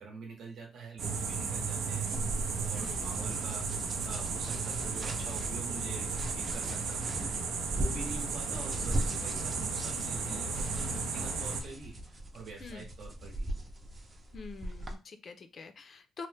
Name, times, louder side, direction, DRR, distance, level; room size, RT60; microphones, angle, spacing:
voice 1, 0.0-2.1 2.7-6.1 6.3-7.3 7.7-13.5, right 4 dB, 60° right, 0 dB, 0.8 m, -46 dB
sound 1, 1.0-11.6, right 5 dB, 80° right, 0.5 m, -34 dB
sound 2, 2.0-14.9, right 1 dB, 25° right, 0.5 m, -40 dB
voice 2, 2.7-3.2 12.6-12.9 14.3-16.3, left 4 dB, 40° left, 9 dB, 0.4 m, -46 dB
3.0 x 2.0 x 3.2 m, 0.30 s
cardioid pair, 125°, 0 cm